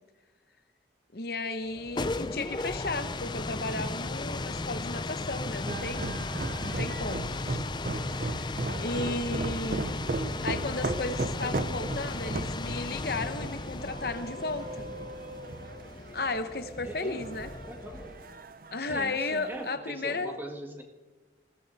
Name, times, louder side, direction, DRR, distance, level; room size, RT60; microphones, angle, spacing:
voice 1, 1.1-6.3 6.6-7.7 8.2-9.9 10.4-14.9 16.1-17.5 18.7-20.4, left 3 dB, 55° left, 9 dB, 1.0 m, -34 dB
sound 1, 1.7-18.4, left 2 dB, 25° left, 0.5 m, -36 dB
sound 2, 5.7-19.7, right 2 dB, 50° right, 0.7 m, -37 dB
voice 2, 10.2-10.5 16.8-17.3 17.7-18.1 18.8-20.8, equal, 10° right, 3 dB, 1.9 m, -41 dB
20.5 x 16.0 x 4.2 m, 1.2 s
head